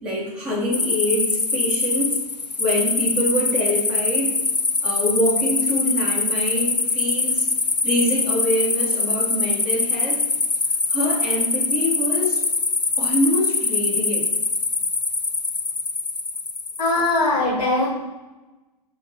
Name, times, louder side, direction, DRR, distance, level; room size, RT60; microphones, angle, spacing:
voice 1, 0.0-2.2 2.6-4.4 4.8-7.5 7.8-10.2 10.9-12.4 13.0-14.3, equal, 5° right, -8 dB, 2.1 m, -25 dB
sound 1, 0.7-17.2, left 4 dB, 80° left, 0.8 m, -23 dB
voice 2, 16.8-17.9, left 2 dB, 60° left, -5 dB, 2.3 m, -20 dB
5.6 x 3.6 x 5.9 m, 1.1 s
figure-of-eight pair, 110°, 21 cm